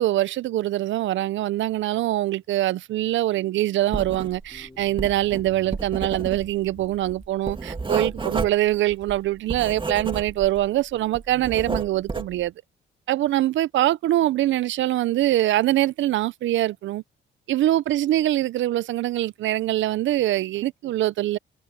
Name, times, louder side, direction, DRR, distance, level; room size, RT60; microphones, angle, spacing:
voice 1, 0.0-12.5 13.1-17.0 17.5-21.4, right 14 dB, 70° right, 0.6 m, -23 dB
sound 1, 3.8-8.5, left 2 dB, 15° left, 7.2 m, -50 dB
Writing, 3.9-4.6 4.8-10.7 11.0-12.4, right 3 dB, 25° right, 2.0 m, -31 dB
cardioid pair, 90°, 20 cm